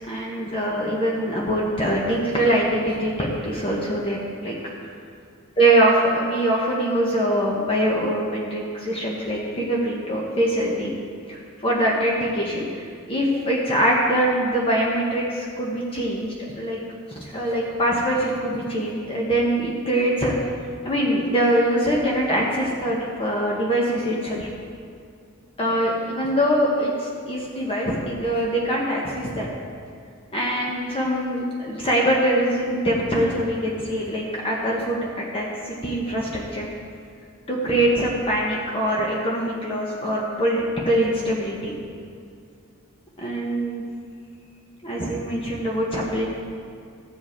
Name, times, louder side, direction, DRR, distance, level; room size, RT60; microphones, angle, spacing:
voice 1, 0.0-4.5 5.6-10.9 11.3-16.8 17.2-20.3 20.8-24.5 25.6-29.5 30.3-36.7 37.5-41.7 43.2-43.8 44.8-46.3, right 1 dB, 25° left, -3 dB, 1.2 m, -23 dB
14.0 x 7.5 x 4.5 m, 2.3 s
head